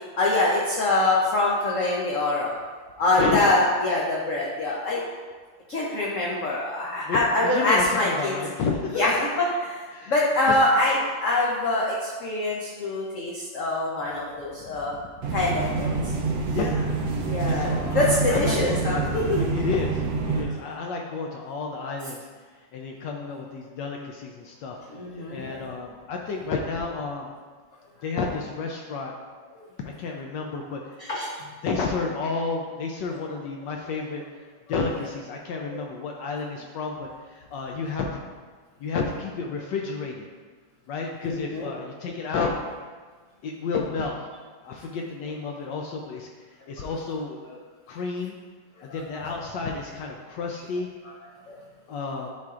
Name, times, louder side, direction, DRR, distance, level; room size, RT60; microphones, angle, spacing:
voice 1, 0.2-2.5 3.0-5.1 5.7-8.3 9.0-9.3 9.7-14.9 15.3-16.1 17.2-19.4 25.0-25.8 31.0-31.3 35.7-35.8 41.2-41.7 48.9-49.0 51.5-51.6, left 2 dB, 60° left, -4 dB, 0.9 m, -24 dB
voice 2, 3.2-3.6 6.6-9.2 9.9-10.1 10.4-10.9 14.6-15.1 16.5-17.0 17.4-22.3 22.7-24.8 25.1-27.3 28.0-29.1 29.8-31.0 31.6-34.2 34.7-38.2 38.8-40.3 40.9-42.5 43.4-44.2 44.6-47.6 47.9-48.4 48.8-50.9 51.9-52.3, left 4 dB, 75° left, 1 dB, 1.2 m, -31 dB
sound 1, 15.2-20.4, right 4 dB, 65° right, 1.3 m, -27 dB
10.5 x 4.2 x 2.4 m, 1.5 s
omnidirectional pair, 2.1 m